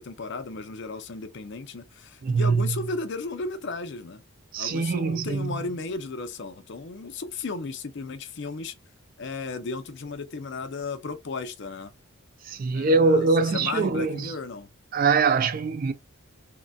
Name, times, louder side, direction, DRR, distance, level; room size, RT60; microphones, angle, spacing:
voice 1, 0.0-4.2 4.6-8.7 9.2-11.9 12.7-13.3 13.5-14.7, left 3 dB, 55° left, 0.5 m, -34 dB
voice 2, 2.2-2.8 4.5-5.6 12.4-14.3 14.9-15.9, right 4 dB, 40° right, 0.3 m, -23 dB
3.8 x 2.1 x 2.2 m
head